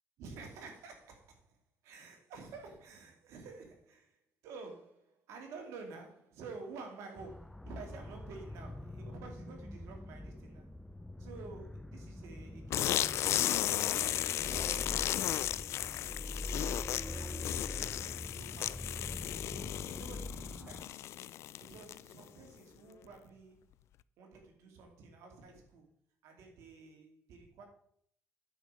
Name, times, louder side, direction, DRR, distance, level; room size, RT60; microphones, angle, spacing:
voice 1, 0.2-1.6 1.8-10.7 11.2-14.0 14.4-15.7 16.5-19.0 20.0-21.1 21.6-23.6 24.2-25.9 26.2-27.6, right 4 dB, 85° right, 2.8 m, -51 dB
sound 1, 7.2-20.8, left 1 dB, 10° left, 0.6 m, -44 dB
sound 2, 12.7-22.2, left 12 dB, 75° left, 0.4 m, -35 dB
9.2 x 5.2 x 7.5 m
cardioid pair, 85°, 5 cm